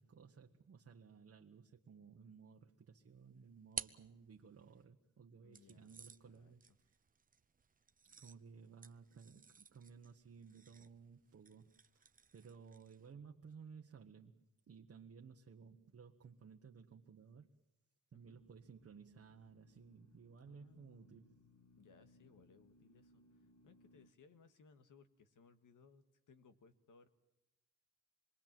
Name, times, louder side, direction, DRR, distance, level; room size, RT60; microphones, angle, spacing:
voice 1, 0.0-6.6 8.0-12.1 12.3-17.5 18.1-21.4, right 6 dB, 50° right, 2 dB, 1.2 m, -58 dB
sound 1, 3.0-4.8 5.5-13.1, right 5 dB, 25° right, 0.8 m, -54 dB
voice 2, 5.4-6.0 6.2-6.6 18.1-18.4 20.5-21.1 21.8-27.1, left 5 dB, 85° left, 9 dB, 1.8 m, -66 dB
sound 2, 18.2-24.1, left 2 dB, 55° left, 1.6 m, -69 dB
26.5 x 22.0 x 7.6 m, 0.95 s
wide cardioid pair, 150°, 31 cm